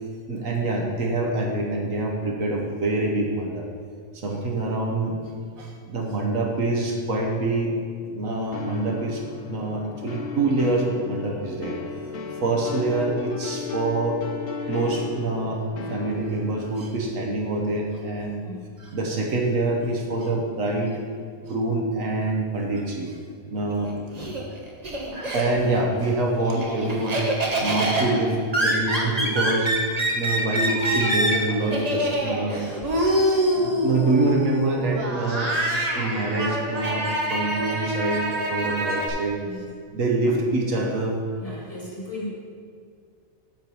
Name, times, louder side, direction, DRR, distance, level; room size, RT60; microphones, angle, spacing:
voice 1, 0.3-3.6 4.1-5.2 5.6-7.8 8.1-9.2 9.5-11.8 12.4-14.2 14.7-15.6 15.9-18.3 18.8-21.0 21.4-23.2 23.4-23.9 25.1-27.2 27.6-28.4 28.6-29.7 30.1-32.6 33.6-35.5 35.9-39.4 39.9-41.2, right 2 dB, 70° right, 0 dB, 1.5 m, -25 dB
sound 1, 8.5-16.8, left 5 dB, 65° left, 1.0 m, -35 dB
voice 2, 18.3-18.7 23.5-23.9 39.4-39.7 41.4-42.3, left 1 dB, 25° left, -7 dB, 2.6 m, -37 dB
Laughter, 23.7-25.8 26.2-39.1, right 1 dB, 30° right, 1.2 m, -26 dB
9.0 x 4.6 x 6.9 m, 2.1 s
omnidirectional pair, 1.5 m